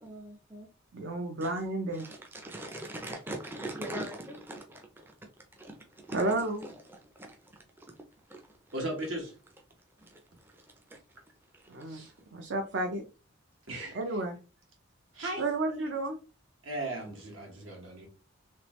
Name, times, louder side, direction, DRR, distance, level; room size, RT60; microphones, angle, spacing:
voice 1, 0.0-0.7 1.4-1.5 1.9-8.0 8.3-8.6 10.0-11.2 11.5-12.0, right 1 dB, 10° right, 0.4 m, -43 dB
voice 2, 0.9-2.0 6.1-6.6 11.7-12.0 12.3-13.0 13.9-14.4 15.4-16.2, right 2 dB, 60° right, 0.6 m, -31 dB
voice 3, 8.7-9.3 11.9-12.1 13.7-14.2 15.1-15.9 16.6-18.1, right 1 dB, 75° right, 1.5 m, -38 dB
3.3 x 3.0 x 3.0 m
head